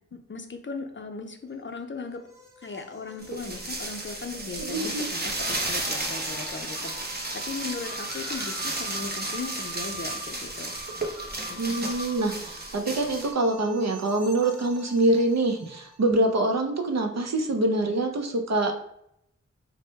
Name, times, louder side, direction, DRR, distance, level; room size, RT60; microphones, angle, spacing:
voice 1, 0.0-2.2 2.6-11.0 11.5-11.8, left 4 dB, 40° left, 5 dB, 0.5 m, -38 dB
sound 1, 1.5-16.1, right 2 dB, 10° right, 1.0 m, -44 dB
sound 2, 3.2-13.3, right 2 dB, 35° right, 0.8 m, -33 dB
voice 2, 4.6-5.1 11.6-18.8, right 2 dB, 60° right, 5 dB, 0.6 m, -25 dB
3.5 x 2.1 x 4.0 m, 0.77 s
wide cardioid pair, 50°, 29 cm